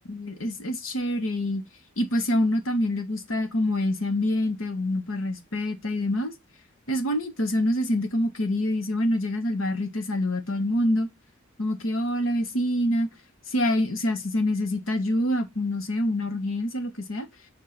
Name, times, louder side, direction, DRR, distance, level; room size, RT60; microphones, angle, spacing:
voice 1, 0.1-1.6 2.0-6.3 6.9-11.1 11.6-13.1 13.5-17.3, left 1 dB, 85° left, 1.4 m, -26 dB
6.8 x 2.8 x 5.7 m
head